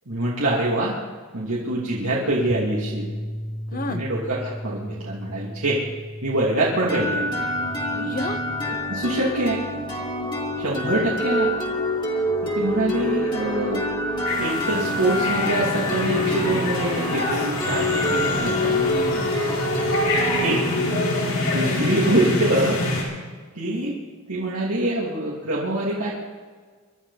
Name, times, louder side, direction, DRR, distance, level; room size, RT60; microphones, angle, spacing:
voice 1, 0.1-1.0 1.3-3.1 3.7-5.8 6.2-7.5 8.7-9.6 10.6-11.5 12.4-13.8 14.4-18.7 20.3-20.7 21.0-21.2 21.5-22.8 23.5-24.0 24.3-26.1, right 1 dB, 85° right, -6 dB, 2.8 m, -24 dB
Bass guitar, 2.5-8.8, equal, ahead, 0.8 m, -35 dB
voice 2, 3.7-4.0 7.9-8.4 17.9-19.3, left 2 dB, 40° left, 9 dB, 0.9 m, -32 dB
sound 1, 6.9-22.5, left 1 dB, 20° left, 2.4 m, -26 dB
sound 2, 14.2-23.0, left 2 dB, 80° left, 5.2 m, -26 dB
24.5 x 12.0 x 4.2 m, 1.5 s
head